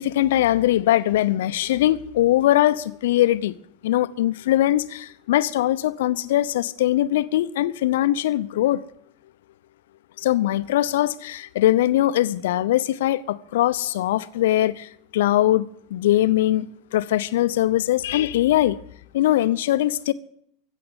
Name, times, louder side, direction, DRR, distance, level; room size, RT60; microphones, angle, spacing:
voice 1, 0.0-3.5 3.8-8.8 10.2-15.7 15.9-16.7 16.9-18.8 19.1-20.1, left 14 dB, 65° left, 0.7 m, -21 dB
15.5 x 7.7 x 9.7 m
hypercardioid pair, 85°, 0 cm